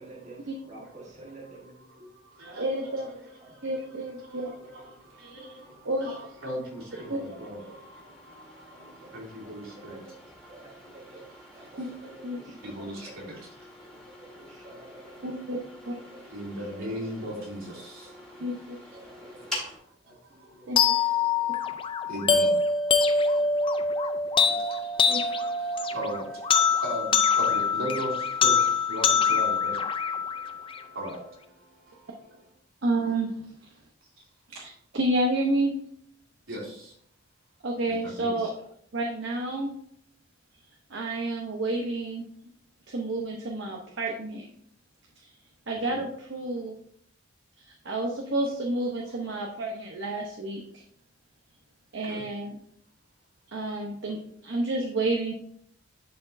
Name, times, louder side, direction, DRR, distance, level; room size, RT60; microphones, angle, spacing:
voice 1, 0.0-2.1 2.5-2.6 3.0-3.1 3.4-3.5 3.9-4.0 4.4-4.9 6.0-6.1 7.3-7.7 8.7-9.1 9.4-10.1 10.5-11.3 11.5-13.3 13.9-15.4 16.0-17.3 18.9-19.6 20.0-20.7 21.0-21.6 23.2-23.5 24.3-24.7, right 2 dB, 35° right, 1.4 m, -50 dB
voice 2, 1.9-2.7 3.1-10.0 11.3-11.9 12.6-13.5 16.3-18.4 19.0-19.2 19.5-20.7 21.9-22.6 22.9-32.4 36.5-36.9 37.9-38.5 45.9-46.0 52.0-52.2, equal, 70° right, 2.7 m, -39 dB
voice 3, 2.6-3.1 3.6-4.5 5.8-6.1 7.1-7.2 11.8-11.9 12.2-12.4 15.2-15.6 15.9-16.0 18.4-18.8 20.7-20.8 25.1-25.2 32.8-33.3 34.5-35.7 37.6-38.5 38.9-39.7 40.9-42.3 42.9-44.4 45.2-45.3 45.7-46.8 47.6-50.8 51.9-52.6 53.5-55.3, right 2 dB, 55° right, 0.8 m, -30 dB
sound 1, 4.0-19.8, left 1 dB, 5° left, 1.9 m, -46 dB
sound 2, 20.8-30.8, left 5 dB, 25° left, 0.4 m, -24 dB
11.0 x 4.2 x 2.6 m
head